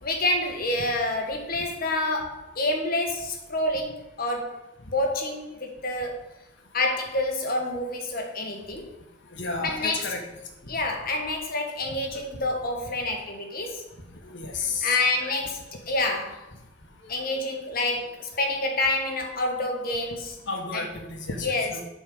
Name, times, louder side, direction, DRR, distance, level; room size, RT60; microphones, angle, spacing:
voice 1, 0.0-4.6 4.8-6.2 6.7-8.9 9.6-10.1 10.7-13.8 14.8-15.6 15.9-16.5 17.1-20.4 20.7-20.8 21.4-21.7, left 2 dB, 50° left, 3 dB, 1.6 m, -28 dB
voice 2, 9.3-10.2 14.2-15.3 20.5-21.8, left 3 dB, 65° left, 3 dB, 1.6 m, -32 dB
8.4 x 4.5 x 7.1 m, 0.94 s
head